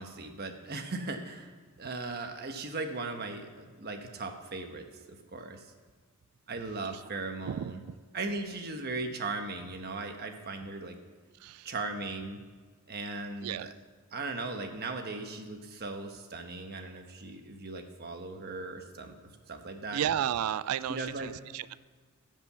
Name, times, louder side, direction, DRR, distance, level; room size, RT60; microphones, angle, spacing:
voice 1, 0.0-1.5 1.8-5.7 6.5-7.8 8.1-11.0 11.6-12.4 12.9-13.7 14.1-20.0 20.9-21.3, right 3 dB, 45° right, 5 dB, 1.2 m, -38 dB
voice 2, 19.9-21.8, right 10 dB, 75° right, 16 dB, 0.3 m, -32 dB
16.0 x 5.4 x 6.9 m, 1.5 s
head